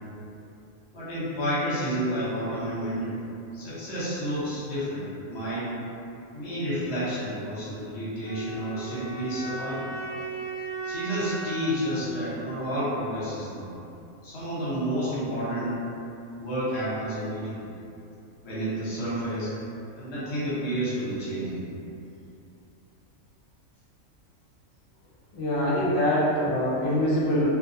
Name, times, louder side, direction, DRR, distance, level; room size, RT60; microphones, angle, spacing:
voice 1, 0.9-3.2 3.5-5.7 6.3-9.9 10.8-13.7 14.2-15.8 16.4-17.7 18.4-19.5 20.0-21.6, equal, 55° left, -10 dB, 1.1 m, -30 dB
sound 1, 8.2-13.2, right 3 dB, 65° right, 0.9 m, -37 dB
voice 2, 25.3-27.5, left 1 dB, 80° left, -8 dB, 0.3 m, -24 dB
2.5 x 2.2 x 2.6 m, 2.7 s
omnidirectional pair, 1.4 m